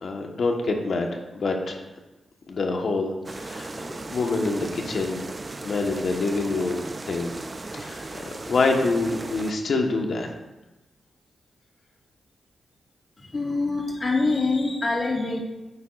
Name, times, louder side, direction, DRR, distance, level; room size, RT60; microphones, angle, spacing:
voice 1, 0.0-1.9 2.5-5.3 5.6-7.3 7.7-10.3, left 3 dB, 65° left, 2 dB, 1.2 m, -26 dB
sound 1, 3.2-9.5, right 2 dB, 30° right, 0.5 m, -37 dB
voice 2, 13.2-15.4, left 3 dB, 40° left, -1 dB, 1.9 m, -25 dB
8.8 x 8.5 x 2.4 m, 1.1 s
cardioid pair, 75°, 0 cm